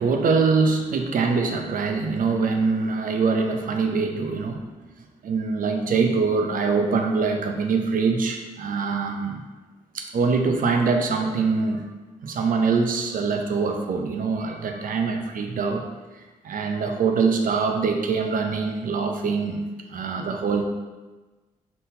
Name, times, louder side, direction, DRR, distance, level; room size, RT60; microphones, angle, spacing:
voice 1, 0.0-4.6 5.2-9.4 9.9-11.9 12.2-15.8 16.4-19.6 19.9-20.6, right 4 dB, 60° right, 4 dB, 0.6 m, -23 dB
3.9 x 3.9 x 2.7 m, 1.2 s
hypercardioid pair, 40°, 16 cm